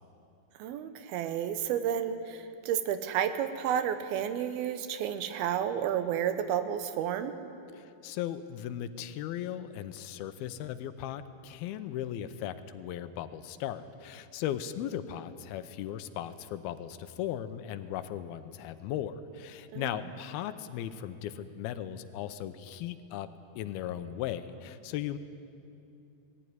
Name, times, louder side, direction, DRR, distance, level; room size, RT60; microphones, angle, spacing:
voice 1, 0.6-7.3 19.7-20.0, right 9 dB, 85° right, 10 dB, 2.8 m, -31 dB
voice 2, 7.7-23.3 23.6-25.2, left 11 dB, 90° left, 11 dB, 2.7 m, -37 dB
19.5 x 15.5 x 9.5 m, 2.7 s
omnidirectional pair, 4.3 m